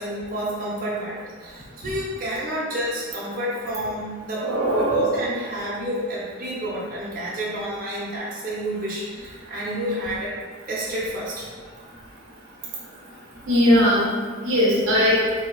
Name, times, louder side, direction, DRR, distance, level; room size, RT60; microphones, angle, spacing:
voice 1, 0.0-4.4 4.7-10.3 10.7-11.5, right 1 dB, 40° right, -7 dB, 0.9 m, -29 dB
voice 2, 4.3-5.1 13.5-14.0 14.4-15.2, equal, 75° right, -6 dB, 0.8 m, -19 dB
4.3 x 2.9 x 2.4 m, 1.5 s
head